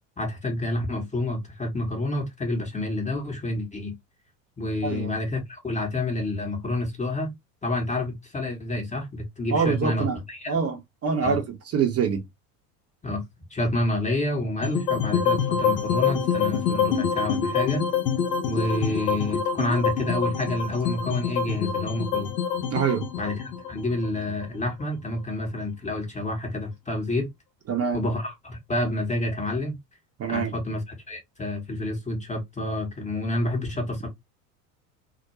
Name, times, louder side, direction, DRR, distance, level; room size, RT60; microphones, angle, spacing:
voice 1, 0.2-3.9 4.6-7.3 7.6-10.6 11.2-11.4 13.0-17.8 18.5-22.3 23.2-23.4 23.7-27.3 27.9-29.8 30.3-34.1, left 2 dB, 15° left, 0.9 m, -28 dB
voice 2, 4.8-5.1 9.5-10.2 10.5-11.4 11.7-12.2 22.7-23.0 27.7-28.0 30.2-30.5, right 6 dB, 30° right, 0.7 m, -25 dB
sound 1, 14.6-24.8, left 7 dB, 80° left, 0.7 m, -26 dB
2.3 x 2.2 x 2.9 m
hypercardioid pair, 75°, 49 cm